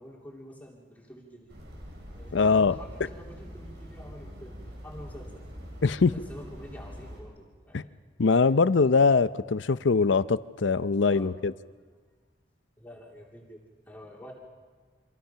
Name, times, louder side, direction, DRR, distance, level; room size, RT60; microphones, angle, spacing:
voice 1, 0.0-1.5 2.1-5.5 5.8-8.0 8.5-8.8 11.1-11.3 12.8-14.3, equal, 10° left, 2.9 m, -47 dB
sound 1, 1.5-7.2, equal, 65° right, 7.7 m, -44 dB
voice 2, 2.3-2.7 5.8-6.1 7.7-7.8 8.2-11.5, left 4 dB, 90° left, 0.6 m, -22 dB
27.0 x 26.0 x 5.8 m
head